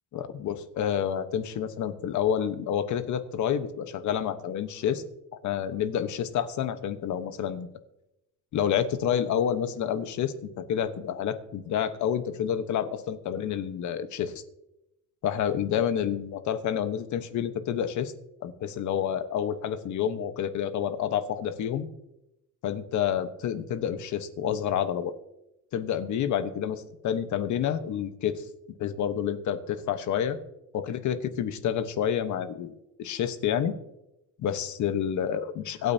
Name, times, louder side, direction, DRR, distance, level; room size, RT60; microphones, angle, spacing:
voice 1, 0.1-5.0 5.4-7.7 8.5-14.3 15.2-18.1 18.4-21.9 22.6-25.1 25.7-28.4 28.8-30.4 30.7-33.8 34.4-35.9, left 9 dB, 65° left, 10 dB, 1.2 m, -29 dB
25.0 x 9.1 x 2.8 m, 0.89 s
cardioid pair, 120°, 31 cm